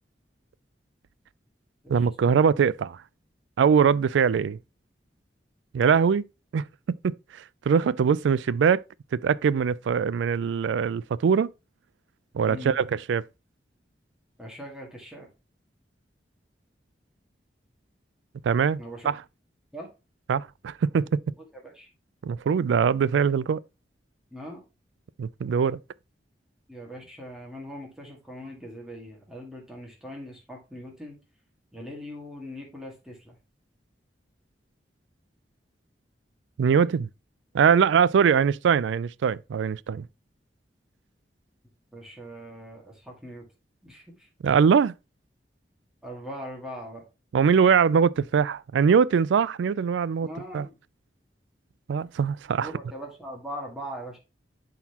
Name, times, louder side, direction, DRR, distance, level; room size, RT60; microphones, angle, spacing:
voice 1, 1.9-3.0 3.6-4.6 5.7-6.3 6.5-8.8 9.1-11.5 12.3-13.2 18.4-19.2 20.3-21.2 22.2-23.6 25.2-25.8 36.6-37.1 37.5-40.0 44.4-44.9 47.3-50.3 50.5-50.7 51.9-52.7, right 6 dB, 85° right, 0.3 m, -22 dB
voice 2, 14.4-15.3 18.8-19.1 19.7-19.9 21.6-21.9 24.3-24.6 26.7-31.2 31.7-33.3 41.9-43.4 43.8-44.3 46.0-47.0 50.2-50.6 52.6-54.2, equal, 5° right, 1.8 m, -40 dB
11.0 x 3.9 x 2.9 m
head